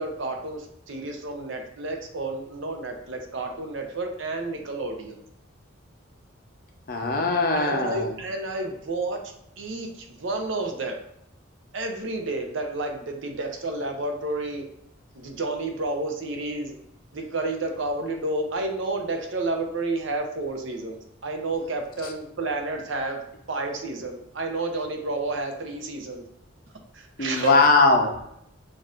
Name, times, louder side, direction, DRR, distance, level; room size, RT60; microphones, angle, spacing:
voice 1, 0.0-5.2 7.6-9.2 9.6-11.0 11.7-14.6 15.1-16.8 17.1-23.2 23.5-26.2 26.9-27.6, right 2 dB, 60° right, 3 dB, 0.6 m, -30 dB
voice 2, 6.9-8.1 27.2-28.2, left 3 dB, 45° left, 3 dB, 0.6 m, -20 dB
6.1 x 2.5 x 2.5 m, 0.74 s
head